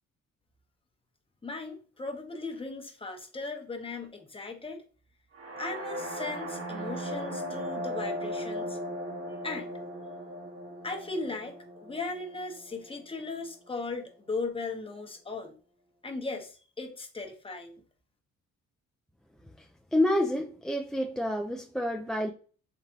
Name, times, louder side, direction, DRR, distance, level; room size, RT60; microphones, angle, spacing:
voice 1, 1.4-4.8 5.6-8.8 9.4-9.7 10.8-15.5 16.0-17.8, left 3 dB, 20° left, 1.0 m, -37 dB
sound 1, 5.3-13.2, equal, 50° right, 1.4 m, -37 dB
voice 2, 19.9-22.3, left 1 dB, ahead, 0.3 m, -28 dB
3.6 x 3.3 x 2.8 m
cardioid pair, 90°, 30 cm